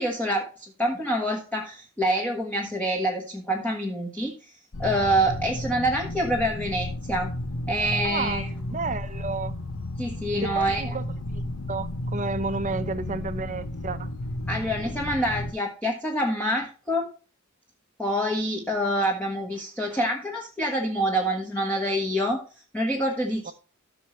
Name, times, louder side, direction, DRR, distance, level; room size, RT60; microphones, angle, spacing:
voice 1, 0.0-4.5 4.8-7.3 7.7-8.5 8.7-9.0 10.0-10.9 14.5-17.1 18.0-22.4 22.7-23.5, equal, 5° left, 1.4 m, -26 dB
sound 1, 4.7-15.5, left 1 dB, 70° left, 0.9 m, -33 dB
voice 2, 8.0-9.5 10.4-11.0 11.3-11.4 11.7-14.1 23.4-23.5, right 3 dB, 35° right, 0.8 m, -31 dB
14.5 x 6.2 x 3.1 m
head